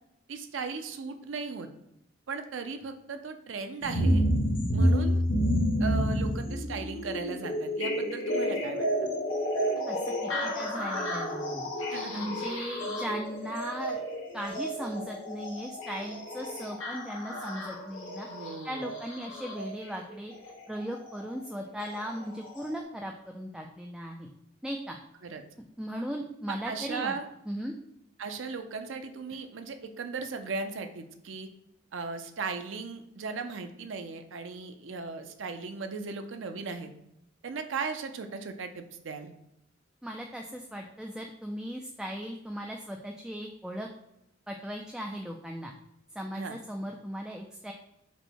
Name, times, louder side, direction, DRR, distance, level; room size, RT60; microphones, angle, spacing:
voice 1, 0.3-1.7 2.3-4.2 4.7-5.2 5.8-8.9 11.9-12.5 18.3-18.9 25.2-25.4 26.5-27.2 28.2-31.5 31.9-36.9 37.4-39.3 46.3-46.6, right 4 dB, 70° right, 7 dB, 0.5 m, -37 dB
sound 1, 3.8-19.7 20.9-21.0 21.8-21.9 22.6-22.7, equal, 70° left, 1.3 m, -30 dB
voice 2, 9.9-11.7 12.1-14.0 14.3-24.3 24.6-25.0 25.8-27.2 27.5-27.7 40.0-43.9 44.5-45.7 46.2-47.7, equal, 5° right, 1 dB, 0.3 m, -37 dB
5.2 x 2.1 x 4.5 m, 0.81 s
head